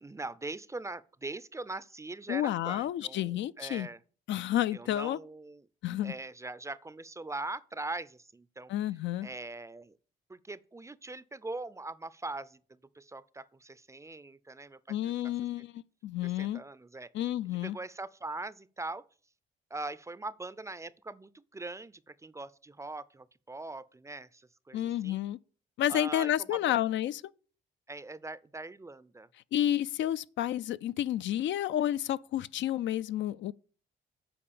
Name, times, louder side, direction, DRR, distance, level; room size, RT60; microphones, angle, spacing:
voice 1, 0.0-4.0 4.7-5.6 6.0-8.7 9.2-9.9 10.3-15.1 15.6-15.7 16.2-17.1 17.5-19.0 19.7-25.2 25.9-26.8 27.9-29.3, right 2 dB, 15° right, 0.4 m, -42 dB
voice 2, 2.3-3.9 4.3-5.2 5.8-6.1 8.7-9.3 14.9-16.6 17.1-17.8 24.7-25.4 25.8-27.2 29.5-33.5, left 12 dB, 70° left, 0.4 m, -30 dB
8.7 x 4.7 x 6.9 m
cardioid pair, 90°, 20 cm